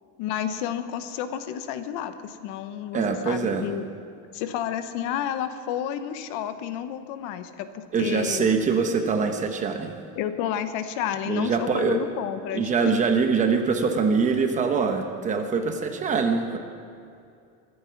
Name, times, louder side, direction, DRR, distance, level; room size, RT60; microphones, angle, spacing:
voice 1, 0.2-3.8 4.3-8.5 10.2-12.7, left 10 dB, 55° left, 10 dB, 0.9 m, -31 dB
voice 2, 2.9-3.7 7.9-9.9 11.3-12.0 12.5-16.6, right 5 dB, 20° right, 5 dB, 0.9 m, -23 dB
23.5 x 9.7 x 5.8 m, 2.4 s
cardioid pair, 175°, 36 cm